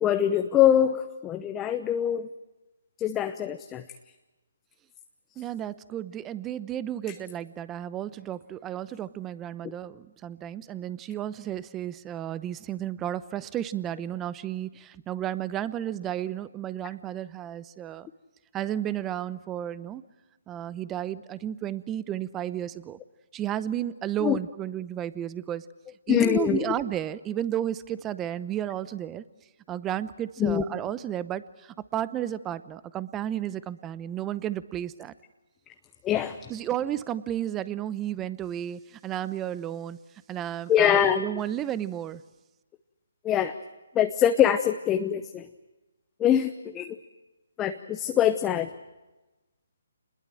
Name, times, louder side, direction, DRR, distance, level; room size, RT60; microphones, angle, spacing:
voice 1, 0.0-2.3 3.0-3.8 24.2-24.4 26.1-26.6 30.4-30.6 36.0-36.5 40.7-41.4 43.2-43.6 43.9-45.5 46.2-47.0 47.6-48.7, left 10 dB, 15° left, 8 dB, 0.8 m, -24 dB
voice 2, 5.4-18.1 18.5-20.0 20.5-23.0 23.3-25.6 26.1-29.2 29.7-35.1 36.5-40.0 40.3-42.2, right 11 dB, 15° right, 16 dB, 0.8 m, -33 dB
27.5 x 21.0 x 7.7 m, 1.1 s
hypercardioid pair, 150°, 0 cm